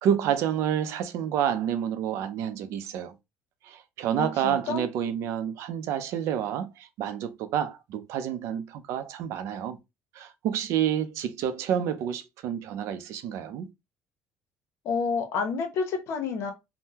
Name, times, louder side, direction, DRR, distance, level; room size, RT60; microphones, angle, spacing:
voice 1, 0.0-3.1 3.6-9.8 10.1-13.7, right 9 dB, 70° right, 0.6 m, -29 dB
voice 2, 4.2-4.9 14.8-16.5, left 5 dB, 60° left, 1.0 m, -29 dB
3.6 x 2.2 x 2.8 m
cardioid pair, 120°, 5 cm